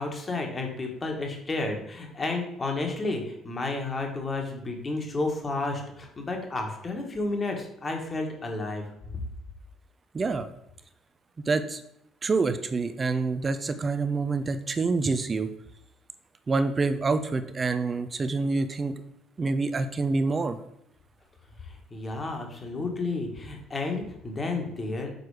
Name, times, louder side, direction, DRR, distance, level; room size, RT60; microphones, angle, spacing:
voice 1, 0.0-8.8 21.6-25.1, left 3 dB, 25° left, 2 dB, 1.6 m, -31 dB
voice 2, 10.1-10.5 11.5-11.8 12.2-15.5 16.5-19.0 19.4-20.6, right 3 dB, 25° right, 10 dB, 0.7 m, -27 dB
6.7 x 4.4 x 4.9 m, 0.79 s
cardioid pair, 120°, 0 cm